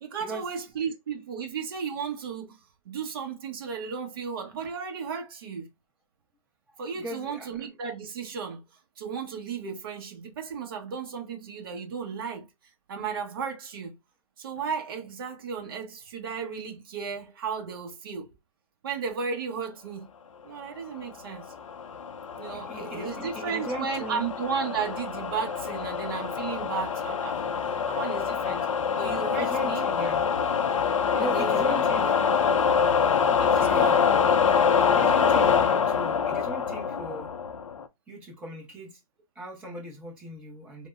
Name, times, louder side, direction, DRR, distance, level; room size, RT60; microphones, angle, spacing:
voice 1, 0.0-2.6 2.8-5.7 6.8-8.6 9.0-13.9 14.4-18.3 18.8-20.1 20.4-21.5 22.4-27.4 27.9-28.7 29.0-29.9 31.2-32.1 32.4-32.6 33.3-34.0 35.1-35.4, right 6 dB, 40° right, 0.9 m, -34 dB
voice 2, 6.9-7.5 22.5-24.3 29.3-30.2 31.1-32.4 33.5-37.3 38.1-39.0 39.3-40.9, right 1 dB, 5° right, 0.7 m, -39 dB
sound 1, 21.4-37.8, left 6 dB, 60° left, 0.5 m, -25 dB
3.4 x 2.0 x 2.4 m
hypercardioid pair, 155°, 19 cm